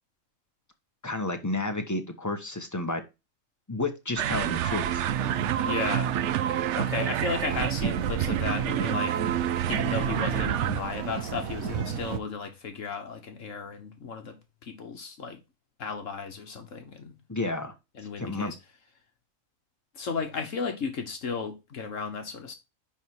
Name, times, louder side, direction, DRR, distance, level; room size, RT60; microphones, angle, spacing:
voice 1, 1.0-3.0 3.7-5.0 5.4-5.7 17.3-17.7 18.2-18.5, left 2 dB, 15° left, 1.2 m, -31 dB
sound 1, 4.2-10.8, right 11 dB, 65° right, 0.8 m, -28 dB
sound 2, 5.1-12.2, right 7 dB, 90° right, 1.3 m, -34 dB
voice 2, 5.6-6.1 6.8-9.2 9.7-14.4 14.6-15.4 15.8-17.1 17.9-18.6 19.9-22.5, left 5 dB, 70° left, 1.4 m, -34 dB
10.5 x 3.6 x 4.6 m
omnidirectional pair, 1.4 m